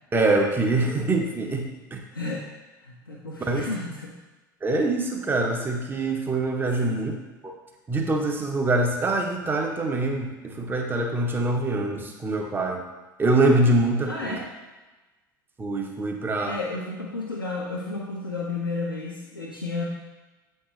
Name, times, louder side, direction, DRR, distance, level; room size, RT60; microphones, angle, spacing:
voice 1, 0.1-2.0 3.4-3.7 4.6-7.1 7.4-7.5 7.9-12.8 13.2-14.4 15.6-16.6, right 2 dB, 20° right, 2 dB, 1.0 m, -24 dB
voice 2, 2.1-2.5 2.8-4.1 6.8-7.0 14.0-14.5 16.5-19.8, left 3 dB, 85° left, -4 dB, 0.8 m, -32 dB
7.8 x 4.4 x 3.2 m, 1.2 s
figure-of-eight pair, 75°, 11 cm